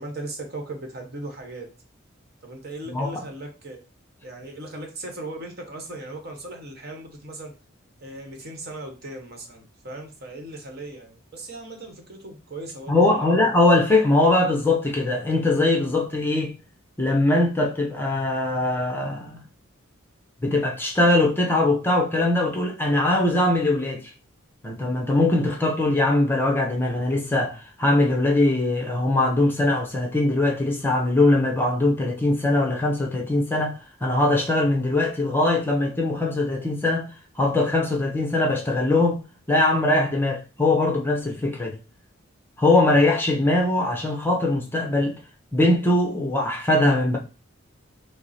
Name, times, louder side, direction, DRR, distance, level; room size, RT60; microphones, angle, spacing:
voice 1, 0.0-1.7 2.4-3.8 4.2-7.5 8.0-13.5, right 2 dB, 50° right, 1.1 m, -38 dB
voice 2, 2.9-3.2 12.9-16.5 17.0-19.4 20.4-24.1 24.6-37.1 37.4-39.2 39.5-41.8 42.6-45.2 45.5-47.2, left 2 dB, 10° left, 0.6 m, -21 dB
5.9 x 2.0 x 4.1 m
head